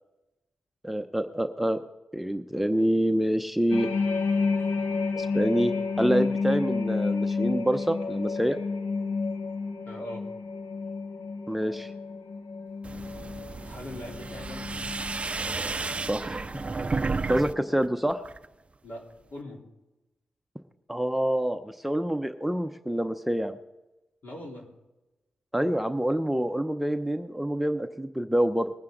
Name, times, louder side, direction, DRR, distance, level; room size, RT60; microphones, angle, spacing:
voice 1, 0.8-1.8 2.1-3.9 5.2-8.6 11.5-11.9 16.0-16.9 17.3-18.2 20.9-23.6 25.5-28.7, right 1 dB, 5° right, 6 dB, 0.8 m, -27 dB
sound 1, 3.7-17.2 17.6-17.9, left 4 dB, 75° left, 0.9 m, -31 dB
voice 2, 9.9-10.3 13.6-14.9 18.8-19.7 24.2-24.7, left 1 dB, 60° left, -2 dB, 4.0 m, -41 dB
sound 2, 12.8-17.5 17.8-18.5, right 3 dB, 35° right, 0.4 m, -32 dB
21.0 x 9.5 x 3.9 m, 1.0 s
cardioid pair, 60°, 3 cm